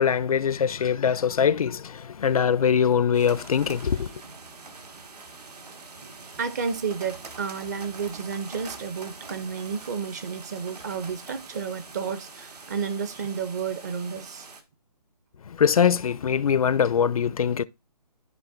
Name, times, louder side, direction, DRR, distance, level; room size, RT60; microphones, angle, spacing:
voice 1, 0.0-4.1 15.5-17.6, left 7 dB, 60° left, 0.4 m, -22 dB
sound 1, 3.1-14.6, right 4 dB, 70° right, 1.5 m, -44 dB
voice 2, 6.4-14.5, right 6 dB, 25° right, 0.6 m, -31 dB
13.0 x 5.0 x 2.5 m
figure-of-eight pair, 150°, 21 cm